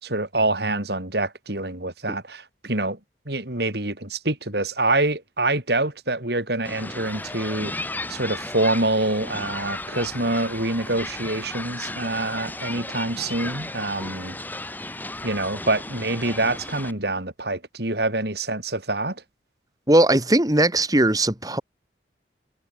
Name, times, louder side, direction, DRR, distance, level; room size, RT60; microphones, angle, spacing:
voice 1, 0.0-3.0 3.3-7.7 8.1-14.4 15.2-19.2, right 2 dB, 55° right, 3.7 m, -26 dB
sound 1, 6.6-16.9, left 2 dB, 10° left, 5.4 m, -34 dB
voice 2, 19.9-21.6, right 1 dB, 20° right, 1.8 m, -19 dB
head